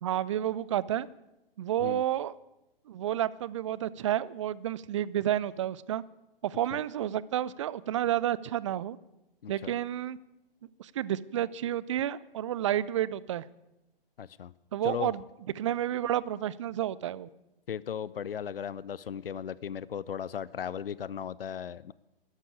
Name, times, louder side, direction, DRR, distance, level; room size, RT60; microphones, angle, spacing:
voice 1, 0.0-1.1 1.6-2.3 2.9-6.0 6.4-9.0 9.5-10.2 10.8-13.5 14.7-15.2 15.6-17.3, right 11 dB, 35° right, 20 dB, 0.5 m, -30 dB
voice 2, 9.4-9.7 14.2-14.5 14.8-15.1 17.7-21.9, left 8 dB, 75° left, 20 dB, 0.6 m, -36 dB
13.0 x 11.5 x 8.4 m, 0.93 s
figure-of-eight pair, 130°, 29 cm